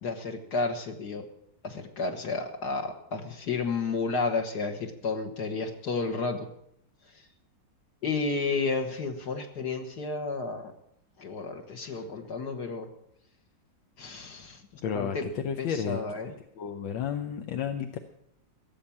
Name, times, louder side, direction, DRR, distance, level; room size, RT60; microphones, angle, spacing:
voice 1, 0.0-1.3 1.6-6.5 8.0-10.7 11.2-12.9 14.0-15.3 15.6-16.3, left 4 dB, 60° left, 4 dB, 1.9 m, -32 dB
voice 2, 14.8-16.0 16.6-18.0, left 7 dB, 80° left, 6 dB, 1.6 m, -32 dB
16.5 x 7.4 x 8.5 m, 0.74 s
omnidirectional pair, 2.1 m